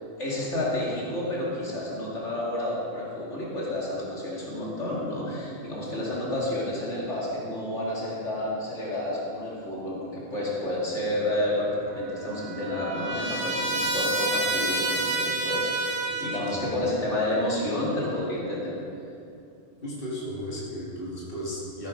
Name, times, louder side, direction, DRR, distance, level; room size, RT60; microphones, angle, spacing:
voice 1, 0.2-18.7, left 1 dB, 65° left, -6 dB, 2.7 m, -30 dB
Trumpet, 11.9-16.6, right 2 dB, 70° right, 1.9 m, -29 dB
voice 2, 16.1-16.6 19.8-21.9, equal, 45° left, -6 dB, 2.5 m, -36 dB
14.5 x 8.6 x 5.2 m, 2.5 s
omnidirectional pair, 1.3 m